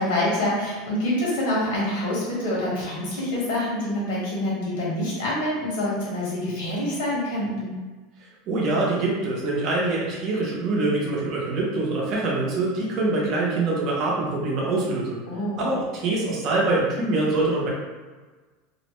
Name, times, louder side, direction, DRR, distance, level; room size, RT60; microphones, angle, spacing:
voice 1, 0.0-7.7 15.3-15.6, left 1 dB, 80° left, -5 dB, 1.2 m, -26 dB
voice 2, 8.5-15.2 15.6-17.7, right 2 dB, 35° right, -4 dB, 0.7 m, -24 dB
2.6 x 2.1 x 3.0 m, 1.3 s
supercardioid pair, 165°, 0 cm